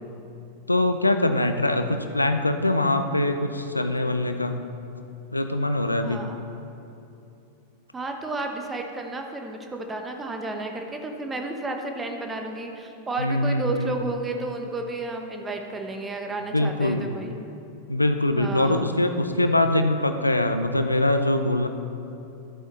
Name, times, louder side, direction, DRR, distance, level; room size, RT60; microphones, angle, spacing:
voice 1, 0.7-4.7 5.3-6.3 13.2-14.0 16.5-17.0 17.9-21.7, left 1 dB, 85° left, 8 dB, 0.5 m, -23 dB
voice 2, 6.0-6.4 7.9-17.5 18.4-19.0, right 2 dB, 15° right, 3 dB, 1.1 m, -32 dB
12.5 x 8.2 x 4.0 m, 2.8 s
figure-of-eight pair, 90°, 0 cm